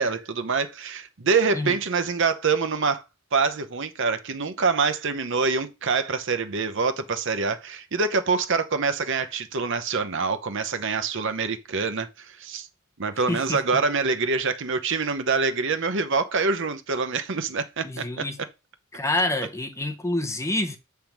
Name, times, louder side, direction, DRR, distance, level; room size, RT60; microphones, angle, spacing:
voice 1, 0.0-3.0 3.3-12.7 13.0-18.2, right 4 dB, 60° right, 0.8 m, -25 dB
voice 2, 13.3-13.6 17.8-18.4 18.9-20.8, left 1 dB, 15° left, 0.7 m, -27 dB
7.6 x 3.5 x 5.9 m
head